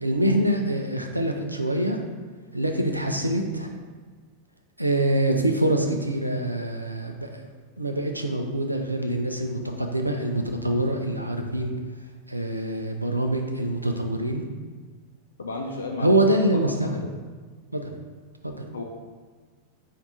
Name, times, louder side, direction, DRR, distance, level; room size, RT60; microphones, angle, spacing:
voice 1, 0.0-2.0 2.5-3.7 4.8-7.5 7.8-11.7 12.3-14.4 16.0-17.0 17.7-17.9 18.4-18.6, right 1 dB, 85° right, 4 dB, 0.4 m, -25 dB
voice 2, 15.4-16.2 16.5-17.0 18.7-18.8, left 3 dB, 70° left, 1 dB, 0.4 m, -33 dB
4.6 x 2.5 x 4.0 m, 1.5 s
figure-of-eight pair, 90°, 0 cm